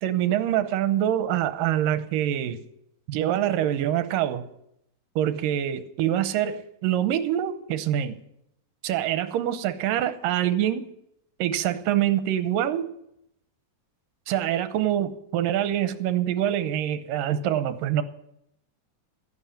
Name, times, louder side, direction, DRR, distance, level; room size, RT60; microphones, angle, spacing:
voice 1, 0.0-2.6 3.1-4.5 5.2-8.2 8.8-10.9 11.4-12.9 14.3-18.0, right 11 dB, 85° right, 2.5 m, -25 dB
14.0 x 11.0 x 7.2 m
omnidirectional pair, 4.0 m